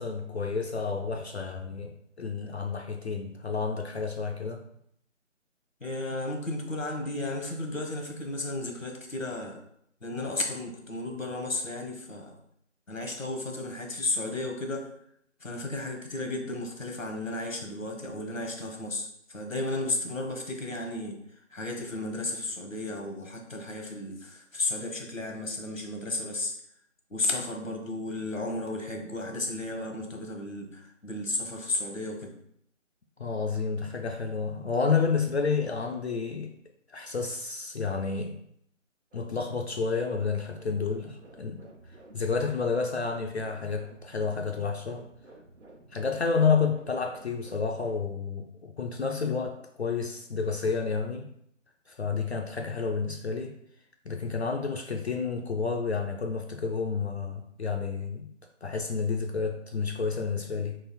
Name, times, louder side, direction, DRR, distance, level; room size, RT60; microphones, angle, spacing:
voice 1, 0.0-4.6 33.2-36.5 36.9-38.4 39.1-45.1 45.9-51.3 51.9-53.6 54.1-58.3 58.6-60.8, left 5 dB, 60° left, 2 dB, 0.5 m, -30 dB
voice 2, 5.8-9.6 10.0-12.4 12.9-14.9 15.4-21.2 21.5-26.5 27.1-32.3, left 2 dB, 85° left, 2 dB, 1.2 m, -33 dB
sound 1, 39.1-47.9, right 1 dB, 60° right, 0.9 m, -52 dB
3.9 x 2.5 x 4.1 m, 0.71 s
figure-of-eight pair, 155°, 38 cm